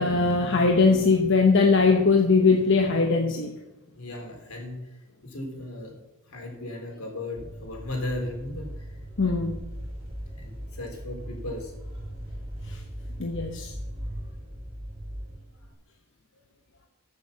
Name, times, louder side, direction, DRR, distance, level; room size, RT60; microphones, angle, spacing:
voice 1, 0.0-3.5 9.2-9.6 12.7-12.8 13.2-13.7, left 4 dB, 60° left, 3 dB, 1.0 m, -21 dB
voice 2, 3.9-4.9 5.2-5.9 6.2-9.6 10.3-11.9, left 1 dB, 85° left, 1 dB, 3.8 m, -36 dB
sound 1, 7.4-15.7, equal, 30° right, 3.5 m, -39 dB
14.0 x 6.9 x 5.8 m, 1.0 s
head